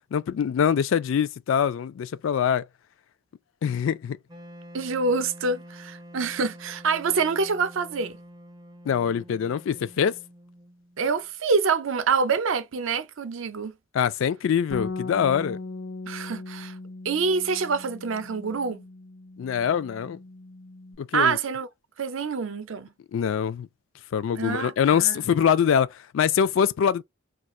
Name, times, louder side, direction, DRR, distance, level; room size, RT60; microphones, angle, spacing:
voice 1, 0.1-2.7 3.6-4.2 8.9-10.1 13.9-15.6 19.4-20.2 21.0-21.4 23.1-23.7 24.1-27.0, left 8 dB, 70° left, 0.3 m, -24 dB
Wind instrument woodwind instrument, 4.3-11.3, equal, 20° right, 0.4 m, -47 dB
voice 2, 4.7-8.2 11.0-13.7 16.1-16.7 17.0-18.8 21.1-21.7 22.0-22.9 24.3-25.2, right 5 dB, 70° right, 0.5 m, -26 dB
Bass guitar, 14.7-21.0, left 3 dB, 85° left, 1.0 m, -39 dB
2.4 x 2.4 x 4.1 m
head